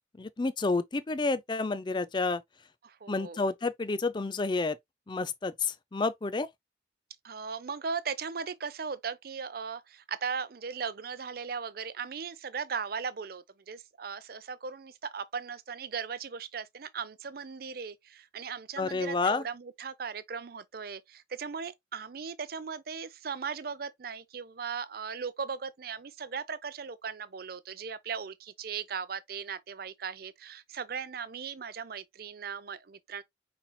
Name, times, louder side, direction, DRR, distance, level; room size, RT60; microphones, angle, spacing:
voice 1, 0.2-2.4 3.1-4.8 5.1-6.5 18.8-19.4, left 3 dB, 25° left, 0.4 m, -30 dB
voice 2, 2.8-3.4 7.2-33.2, right 6 dB, 55° right, 0.5 m, -38 dB
5.5 x 4.2 x 2.2 m
head